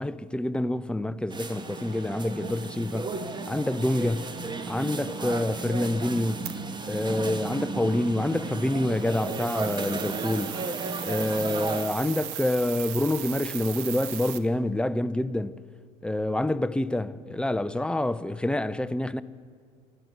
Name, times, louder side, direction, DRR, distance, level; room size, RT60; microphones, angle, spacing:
voice 1, 0.0-3.1 3.5-4.3 4.7-6.6 6.9-10.6 11.0-15.6 16.0-19.2, left 1 dB, 5° left, 0.4 m, -27 dB
sound 1, 1.3-11.9, right 3 dB, 20° right, 1.0 m, -34 dB
sound 2, 6.4-6.6 9.0-14.4, right 12 dB, 70° right, 0.9 m, -37 dB
13.5 x 11.0 x 8.0 m
hypercardioid pair, 85°, 20 cm